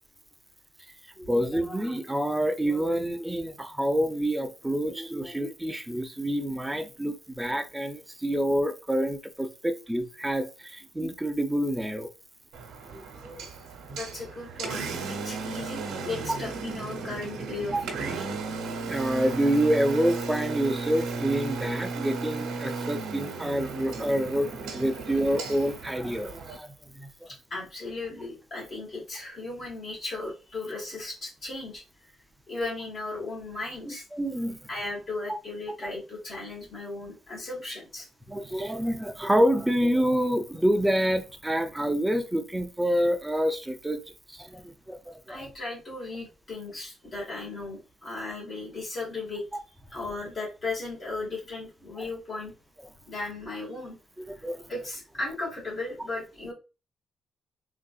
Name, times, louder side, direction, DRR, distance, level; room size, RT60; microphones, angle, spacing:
voice 1, 1.2-12.1 12.9-13.4 13.9-14.0 17.7-17.8 18.8-24.5 24.7-27.1 33.9-34.7 38.3-44.0 44.3-45.4 52.0-52.1 54.3-54.7, equal, 10° right, 0.5 m, -27 dB
Engine, 12.5-26.6, right 4 dB, 85° right, 0.9 m, -35 dB
voice 2, 13.9-18.3 27.3-31.8 32.5-34.0 34.7-38.1 45.3-49.4 49.9-52.5 53.1-54.0 54.3-56.5, left 3 dB, 45° left, 1.8 m, -36 dB
3.7 x 2.6 x 2.4 m
cardioid pair, 90°, 0 cm